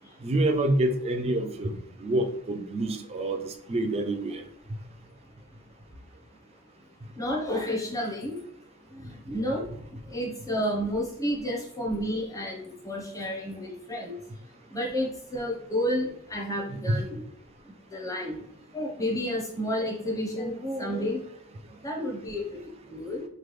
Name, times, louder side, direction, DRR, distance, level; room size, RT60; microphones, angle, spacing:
voice 1, 0.2-4.4 16.7-17.0, right 1 dB, 30° right, 6 dB, 0.3 m, -27 dB
voice 2, 7.1-8.4 8.8-14.4 14.7-17.2 17.6-22.6 22.9-23.3, equal, 15° left, -1 dB, 0.7 m, -31 dB
3.2 x 2.2 x 3.0 m, 0.71 s
head